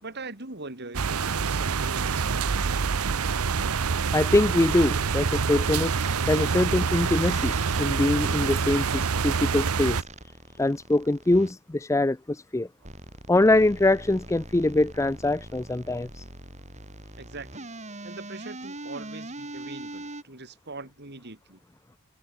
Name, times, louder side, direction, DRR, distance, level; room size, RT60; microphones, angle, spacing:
voice 1, 0.0-2.8 17.2-17.7 18.0-21.6, right 3 dB, 50° right, 3.5 m, -42 dB
sound 1, 0.9-10.0, right 5 dB, 90° right, 0.8 m, -26 dB
voice 2, 4.1-5.9 6.3-7.5 7.8-10.0 10.6-12.7 13.3-16.2, left 2 dB, 15° left, 0.5 m, -23 dB
sound 2, 6.0-11.5 12.8-20.2, right 2 dB, 35° right, 4.5 m, -42 dB
head